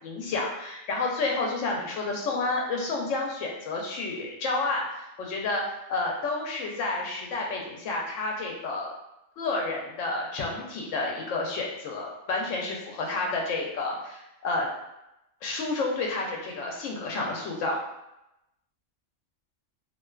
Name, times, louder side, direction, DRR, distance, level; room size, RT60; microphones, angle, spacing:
voice 1, 0.0-5.6 5.9-8.9 9.4-14.7 15.4-17.8, left 3 dB, 80° left, -1 dB, 0.9 m, -30 dB
2.4 x 2.3 x 2.3 m, 0.89 s
omnidirectional pair, 1.3 m